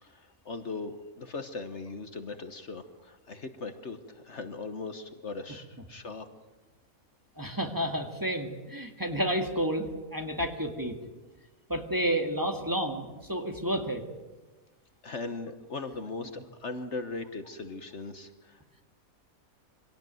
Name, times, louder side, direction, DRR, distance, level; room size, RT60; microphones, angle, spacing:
voice 1, 0.0-6.3 15.0-18.8, left 3 dB, 55° left, 8 dB, 1.5 m, -39 dB
voice 2, 7.4-10.9 11.7-14.0, equal, 15° right, 3 dB, 2.1 m, -30 dB
25.0 x 18.0 x 9.2 m, 1.2 s
omnidirectional pair, 1.5 m